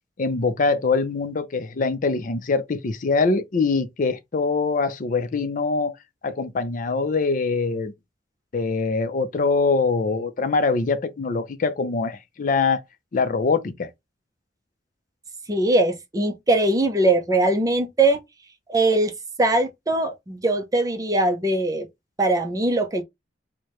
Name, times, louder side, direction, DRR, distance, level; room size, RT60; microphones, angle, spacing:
voice 1, 0.2-6.0 6.2-7.9 8.5-12.8 13.1-13.9, left 4 dB, 50° left, 0.5 m, -23 dB
voice 2, 15.5-18.2 18.7-19.1 19.4-21.9 22.2-23.0, right 2 dB, 20° right, 0.5 m, -21 dB
4.5 x 2.2 x 3.0 m
head